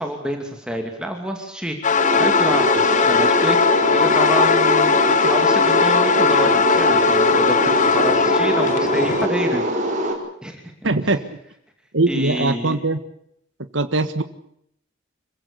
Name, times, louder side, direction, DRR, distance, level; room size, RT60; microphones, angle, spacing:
voice 1, 0.0-9.6 10.4-11.1 12.1-12.8, right 1 dB, 5° right, 3 dB, 2.6 m, -28 dB
sound 1, 1.8-9.3, left 5 dB, 40° left, 0.9 m, -18 dB
sound 2, 2.0-10.1, right 1 dB, 40° right, 4.9 m, -23 dB
voice 2, 10.8-11.2 11.9-13.0 13.7-14.2, right 2 dB, 70° right, 9 dB, 1.6 m, -20 dB
26.5 x 16.0 x 8.4 m, 0.71 s
head